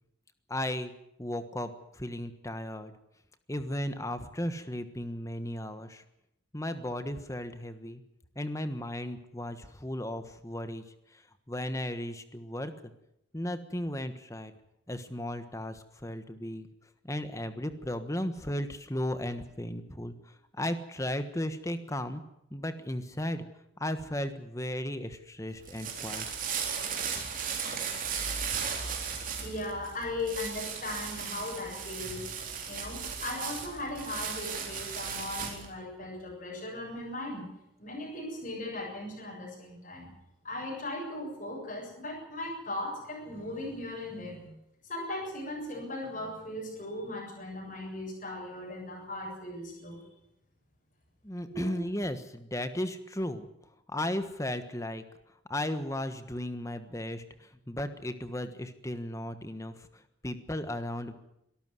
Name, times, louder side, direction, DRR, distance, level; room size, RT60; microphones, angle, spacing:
voice 1, 0.5-0.9 1.2-1.7 2.0-2.9 3.5-6.0 6.5-8.0 8.3-10.8 11.5-12.7 13.3-14.5 14.9-16.7 17.0-20.1 20.6-22.2 22.5-23.5 23.8-26.3 51.2-53.5 53.9-55.0 55.5-59.7 60.2-61.1, left 1 dB, 15° left, 10 dB, 1.3 m, -35 dB
sound 1, 25.5-35.7, right 6 dB, 45° right, 4.0 m, -36 dB
voice 2, 29.4-32.2 32.7-37.5 37.8-40.1 40.4-44.5 44.8-50.0 51.4-51.8, left 1 dB, 40° left, -2 dB, 7.4 m, -38 dB
24.0 x 13.5 x 9.6 m, 0.81 s
head